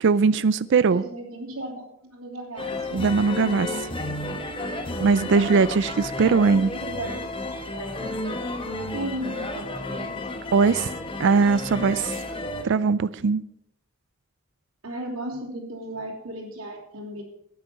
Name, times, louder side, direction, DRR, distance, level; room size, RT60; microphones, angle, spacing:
voice 1, 0.0-1.0 2.9-3.9 5.0-6.7 10.5-10.9 11.2-12.1 12.6-13.4, right 4 dB, 55° right, 16 dB, 0.4 m, -20 dB
voice 2, 0.8-2.7 6.2-7.1 7.6-10.1 14.8-17.2, right 1 dB, 85° right, -5 dB, 3.2 m, -36 dB
sound 1, 2.6-12.6, left 2 dB, 25° left, 1.2 m, -32 dB
12.5 x 9.3 x 5.9 m, 0.77 s
head